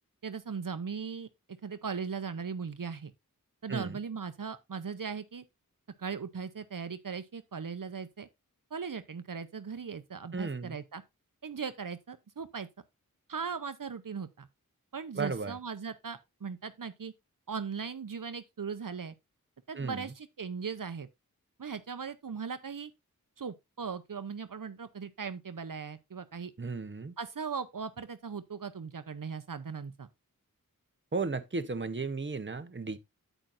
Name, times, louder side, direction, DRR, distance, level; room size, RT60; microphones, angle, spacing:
voice 1, 0.2-1.3 1.6-3.1 3.6-5.4 6.0-8.3 8.7-11.0 11.4-12.7 13.3-14.5 14.9-17.1 17.5-19.1 19.7-21.1 21.6-22.9 23.4-26.5 27.2-30.1, right 6 dB, 70° right, 0.7 m, -38 dB
voice 2, 10.3-10.8 15.2-15.5 19.7-20.0 26.6-27.1 31.1-33.0, right 4 dB, 35° right, 0.9 m, -34 dB
9.1 x 8.8 x 2.5 m
wide cardioid pair, 55°, 34 cm